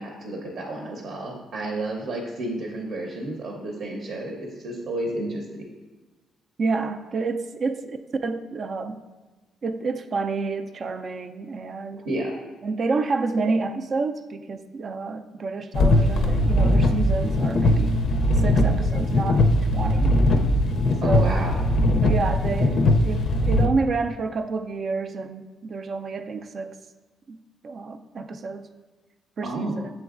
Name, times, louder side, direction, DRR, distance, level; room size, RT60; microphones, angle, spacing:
voice 1, 0.0-5.5 12.0-12.3 21.0-21.6 29.4-29.8, right 1 dB, 70° right, 0 dB, 0.7 m, -31 dB
voice 2, 6.6-8.0 8.2-9.0 9.6-12.1 12.6-18.0 18.4-19.4 19.7-20.2 21.0-21.5 22.0-26.8 27.3-27.4 27.6-28.7 29.4-29.9, right 4 dB, 50° right, 7 dB, 0.3 m, -29 dB
sound 1, 15.7-23.7, left 1 dB, 60° left, 0.4 m, -20 dB
7.1 x 3.1 x 2.4 m, 1.2 s
cardioid pair, 80°, 0 cm